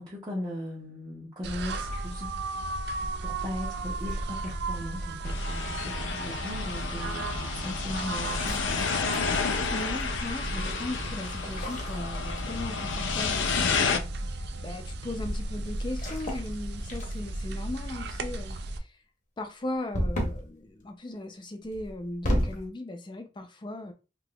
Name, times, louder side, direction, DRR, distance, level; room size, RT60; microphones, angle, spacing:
voice 1, 0.0-2.3 3.2-8.9 10.4-10.7, left 1 dB, 25° right, 0.7 m, -38 dB
sound 1, 1.4-18.8, right 2 dB, 60° right, 0.4 m, -35 dB
sound 2, 4.0-4.8 6.0-6.3 8.3-10.0 11.4-12.8 13.1-13.4 15.9-16.6 16.9-17.5 19.9-20.5 21.7-22.7, equal, 45° left, 0.8 m, -33 dB
sound 3, 5.2-14.0, left 5 dB, 80° left, 0.4 m, -31 dB
voice 2, 9.7-14.3 14.6-18.9 19.4-23.9, left 1 dB, 25° left, 0.5 m, -38 dB
3.5 x 2.9 x 2.3 m
head